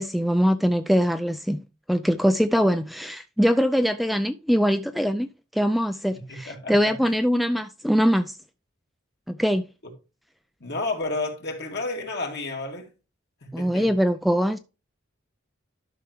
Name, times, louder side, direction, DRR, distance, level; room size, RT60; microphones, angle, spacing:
voice 1, 0.0-1.6 1.9-8.4 9.3-9.6 13.5-14.6, equal, ahead, 0.3 m, -22 dB
voice 2, 6.1-7.1 10.6-12.9 13.4-13.9, left 2 dB, 55° left, 2.4 m, -31 dB
12.0 x 5.8 x 3.1 m
head